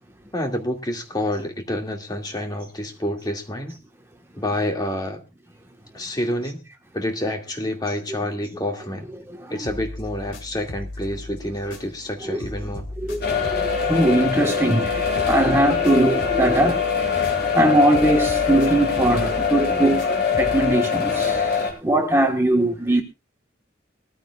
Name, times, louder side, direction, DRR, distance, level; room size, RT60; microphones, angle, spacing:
voice 1, 0.3-3.8 4.4-5.2 5.9-6.6 6.9-9.1 9.5-12.8, left 1 dB, 20° left, 2.1 m, -28 dB
voice 2, 9.3-9.6 12.3-12.4 13.0-17.1 17.4-23.0, right 1 dB, 15° right, 1.3 m, -21 dB
sound 1, 9.6-12.1 12.4-17.6 17.9-20.7, left 1 dB, 75° left, 3.1 m, -37 dB
sound 2, 13.2-21.7, left 6 dB, 50° left, 4.1 m, -23 dB
21.5 x 14.5 x 2.3 m
head